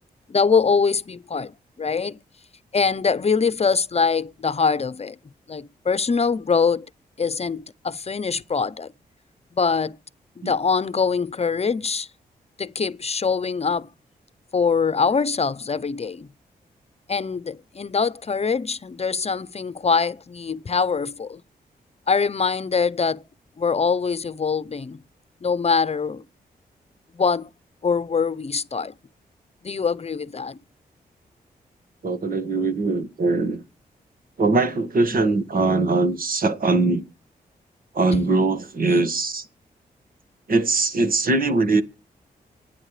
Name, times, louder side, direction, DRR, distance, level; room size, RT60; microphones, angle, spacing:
voice 1, 0.3-2.2 2.7-5.2 5.5-6.9 7.2-8.9 9.5-10.0 10.4-12.1 12.6-13.9 14.5-16.3 17.1-21.4 22.1-23.2 23.6-25.0 25.4-26.2 27.1-27.5 27.8-28.9 29.6-30.6 38.1-38.2, left 5 dB, 40° left, 0.8 m, -23 dB
voice 2, 32.0-33.6 34.4-37.0 37.9-39.5 40.5-41.8, right 3 dB, 60° right, 1.8 m, -21 dB
27.5 x 9.6 x 3.3 m
cardioid pair, 60°, 16 cm